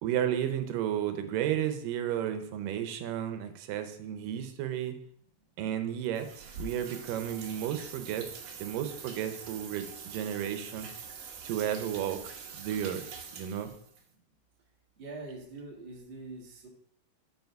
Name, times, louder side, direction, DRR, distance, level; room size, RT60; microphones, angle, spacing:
voice 1, 0.0-5.0 5.6-8.3 8.6-10.9 11.4-12.2 12.5-13.1 13.4-13.7, right 10 dB, 80° right, 8 dB, 2.4 m, -33 dB
sound 1, 6.1-14.0, right 5 dB, 65° right, 1.7 m, -45 dB
voice 2, 15.0-16.7, right 3 dB, 35° right, -2 dB, 0.9 m, -44 dB
8.0 x 5.0 x 4.6 m, 0.67 s
omnidirectional pair, 3.9 m